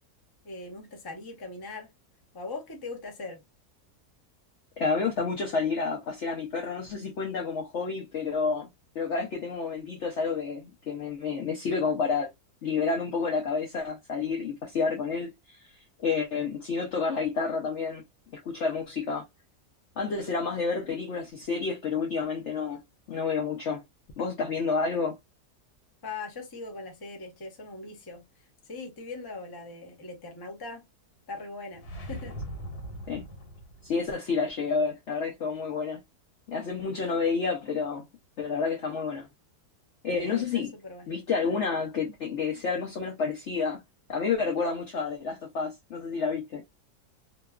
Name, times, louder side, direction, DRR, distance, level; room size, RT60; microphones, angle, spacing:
voice 1, 0.4-1.9 2.3-3.4 26.0-28.2 28.7-30.8 31.3-32.4 40.1-41.1, left 3 dB, 25° left, 0.5 m, -40 dB
voice 2, 4.8-8.7 8.9-12.3 12.6-15.6 16.0-18.0 18.4-19.2 20.0-22.8 23.1-23.8 24.2-25.2 33.1-33.2 33.8-36.0 36.5-38.0 38.4-39.3 40.0-40.7 41.1-43.8 44.1-46.6, left 5 dB, 60° left, 0.8 m, -29 dB
sound 1, 31.7-34.0, equal, 85° left, 1.5 m, -40 dB
2.9 x 2.2 x 2.2 m
omnidirectional pair, 1.6 m